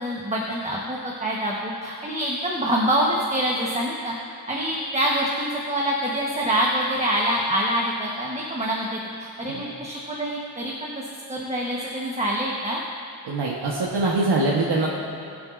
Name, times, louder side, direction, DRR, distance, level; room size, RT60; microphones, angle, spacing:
voice 1, 0.0-4.1 4.5-10.9 11.3-12.8, right 1 dB, 15° right, -3 dB, 1.1 m, -25 dB
voice 2, 13.2-14.9, right 2 dB, 90° right, -4 dB, 1.3 m, -23 dB
21.0 x 7.8 x 2.6 m, 2.7 s
wide cardioid pair, 110°, 39 cm